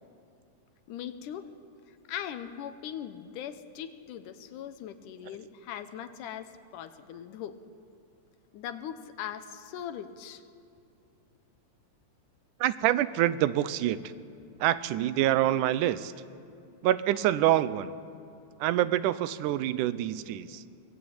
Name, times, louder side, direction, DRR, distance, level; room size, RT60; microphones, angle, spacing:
voice 1, 0.9-1.5 1.9-7.5 8.5-10.4, left 9 dB, 85° left, 9 dB, 2.5 m, -40 dB
voice 2, 12.6-14.1 14.6-16.1 16.8-17.9 18.6-20.6, right 13 dB, 85° right, 15 dB, 2.2 m, -26 dB
23.5 x 18.5 x 8.7 m, 2.6 s
omnidirectional pair, 3.6 m